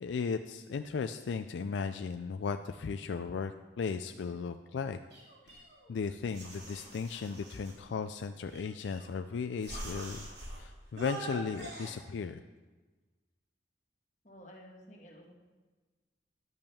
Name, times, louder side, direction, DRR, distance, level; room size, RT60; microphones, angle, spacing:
voice 1, 0.0-5.0 5.5-5.6 5.9-10.3 10.6-12.4, left 5 dB, 80° left, 8 dB, 0.4 m, -36 dB
sound 1, 5.1-6.0 6.3-7.8 8.5-9.2 9.6-10.6 11.0-11.9, right 1 dB, 65° right, 3.4 m, -44 dB
voice 2, 14.2-15.3, equal, 40° left, -1 dB, 1.8 m, -52 dB
10.5 x 5.3 x 7.0 m, 1.3 s
head